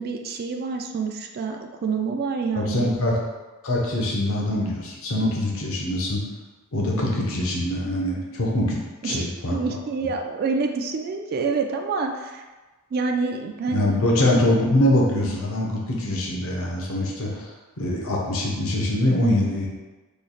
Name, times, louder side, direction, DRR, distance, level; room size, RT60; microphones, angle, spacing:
voice 1, 0.0-3.0 9.0-12.4 12.9-13.9, right 4 dB, 45° right, 4 dB, 0.3 m, -27 dB
voice 2, 2.5-3.1 3.6-6.2 6.7-9.6 13.7-17.5 17.8-19.7, left 1 dB, 65° left, -2 dB, 0.7 m, -23 dB
3.1 x 2.4 x 3.8 m, 1.2 s
head